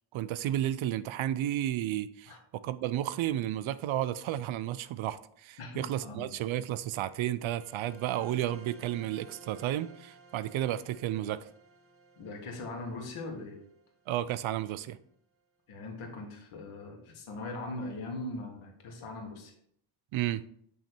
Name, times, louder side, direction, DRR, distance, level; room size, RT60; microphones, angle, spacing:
voice 1, 0.1-11.4 14.1-15.0 20.1-20.4, right 12 dB, 70° right, 14 dB, 0.6 m, -32 dB
voice 2, 5.6-6.3 12.2-13.6 15.7-19.5, left 2 dB, 80° left, 2 dB, 1.8 m, -40 dB
sound 1, 7.6-14.7, right 4 dB, 25° right, 0.9 m, -56 dB
8.8 x 3.2 x 4.4 m, 0.67 s
cardioid pair, 125°, 50 cm